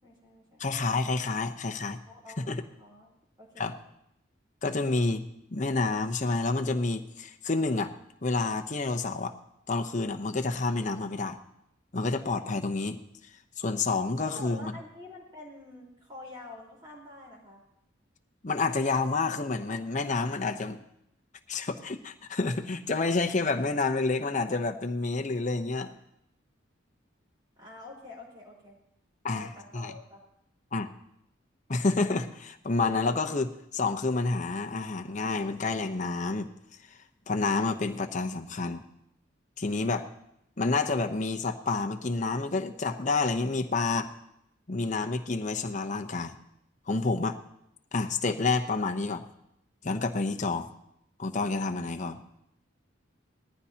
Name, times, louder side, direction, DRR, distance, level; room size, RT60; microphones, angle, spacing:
voice 1, 0.0-0.6 2.1-3.1 3.4-3.7 14.2-17.6 27.6-28.8 29.2-30.2, left 2 dB, 25° right, -2 dB, 4.1 m, -47 dB
voice 2, 0.6-2.0 2.5-2.6 3.6-3.8 4.6-5.2 5.5-7.9 8.2-9.3 9.7-11.4 11.9-13.0 13.6-14.7 18.4-20.8 21.5-25.9 29.2-29.9 30.7-30.9 31.7-36.5 37.3-38.8 39.6-40.1 40.6-44.1 44.7-46.4 46.9-47.4 47.9-49.2 49.8-50.7 51.2-52.2, left 3 dB, 40° left, 5 dB, 0.8 m, -29 dB
19.5 x 14.5 x 2.9 m, 0.79 s
head